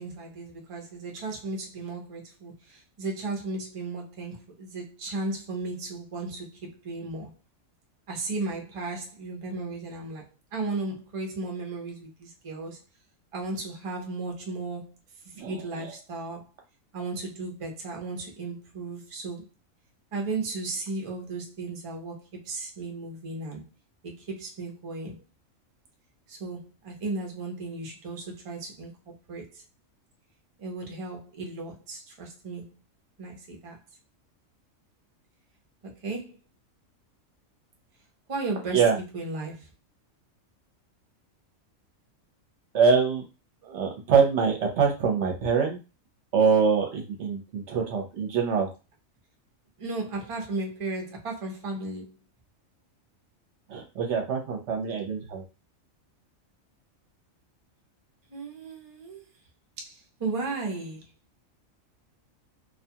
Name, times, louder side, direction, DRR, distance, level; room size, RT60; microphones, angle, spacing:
voice 1, 0.0-7.3 8.1-10.2 10.5-12.8 13.3-14.9 15.4-16.5 16.9-19.5 20.1-23.7 24.0-25.2 26.3-29.0 29.3-29.6 30.6-32.8 33.2-33.8 35.9-36.4 38.3-38.9 39.1-39.7 49.8-52.1 58.3-59.2 59.8-61.1, right 3 dB, 35° right, 0.5 m, -35 dB
voice 2, 42.7-43.2 43.6-45.8 46.3-48.7 53.7-55.4, right 6 dB, 60° right, 0.9 m, -24 dB
2.5 x 2.3 x 2.7 m
omnidirectional pair, 1.4 m